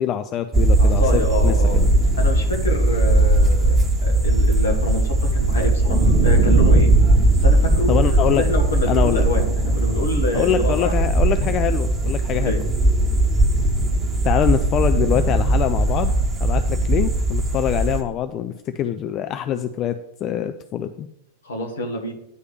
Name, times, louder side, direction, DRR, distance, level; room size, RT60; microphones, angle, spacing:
voice 1, 0.0-1.9 7.9-8.4 8.9-9.3 10.3-12.5 14.2-16.1 16.4-21.1, left 10 dB, 35° left, 9 dB, 0.3 m, -24 dB
sound 1, 0.5-18.0, right 2 dB, 15° right, 1.7 m, -18 dB
voice 2, 0.8-1.8 2.2-3.7 4.0-6.9 7.4-8.0 8.4-9.4 9.7-10.9 12.4-12.6 21.4-22.1, left 2 dB, 65° left, 2 dB, 1.5 m, -26 dB
9.5 x 3.2 x 6.7 m, 0.78 s
figure-of-eight pair, 90°, 0 cm